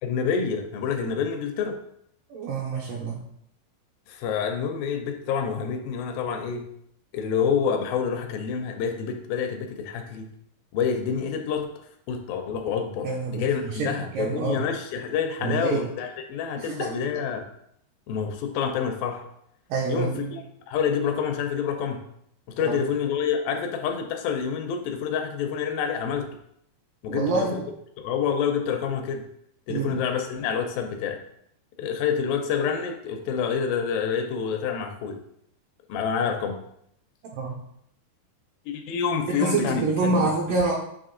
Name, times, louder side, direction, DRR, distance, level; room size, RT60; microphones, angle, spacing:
voice 1, 0.0-1.8 4.1-6.7 7.1-10.3 10.7-11.7 12.1-17.5 18.1-19.2 19.9-22.0 22.5-26.3 27.0-27.6 28.0-29.3 29.7-31.2 31.8-35.2 35.9-36.6 38.7-40.3, left 7 dB, 80° left, 5 dB, 2.2 m, -27 dB
voice 2, 2.3-3.2 13.0-13.4 13.7-14.6 15.4-15.9 16.6-16.9 19.7-20.3 22.6-22.8 27.1-27.6 29.7-30.0 37.3-37.6 39.3-40.7, right 4 dB, 80° right, -2 dB, 2.1 m, -27 dB
9.0 x 3.0 x 3.7 m, 0.72 s
omnidirectional pair, 4.5 m